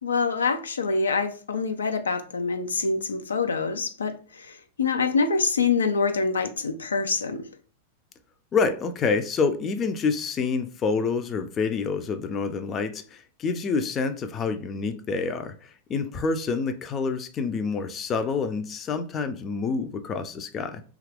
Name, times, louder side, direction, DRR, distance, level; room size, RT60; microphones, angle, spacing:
voice 1, 0.0-7.5, left 4 dB, 90° left, 0.4 m, -25 dB
voice 2, 8.5-20.8, left 4 dB, 30° left, 0.4 m, -27 dB
2.8 x 2.4 x 3.3 m
hypercardioid pair, 105°, 0 cm